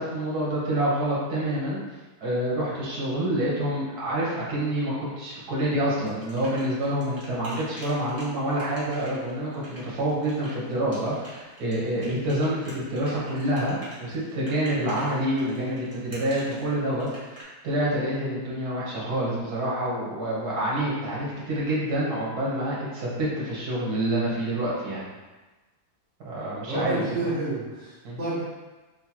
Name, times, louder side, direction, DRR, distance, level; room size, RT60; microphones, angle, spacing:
voice 1, 0.0-1.8 2.2-17.1 17.6-25.0 26.2-26.9 27.2-27.3 28.0-28.2, right 1 dB, 75° right, -6 dB, 1.7 m, -27 dB
sound 1, 5.9-17.4, right 1 dB, 10° right, 1.2 m, -45 dB
voice 2, 26.7-28.4, right 2 dB, 50° right, -8 dB, 1.5 m, -29 dB
6.2 x 2.2 x 2.9 m, 1.2 s
omnidirectional pair, 1.7 m